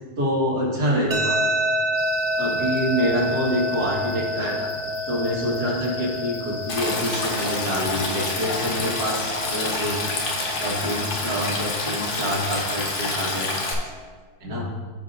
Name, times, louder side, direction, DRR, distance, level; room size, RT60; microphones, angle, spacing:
voice 1, 0.2-1.4 2.4-4.7 5.1-10.1 10.6-13.6 14.4-14.7, equal, 90° right, -4 dB, 2.3 m, -26 dB
sound 1, 1.1-14.1, equal, 55° right, 0.4 m, -30 dB
sound 2, 1.9-13.4, left 5 dB, 80° left, 1.4 m, -39 dB
Stream, 6.7-13.7, left 2 dB, 50° left, 1.3 m, -28 dB
14.5 x 5.0 x 2.6 m, 1.5 s
omnidirectional pair, 1.7 m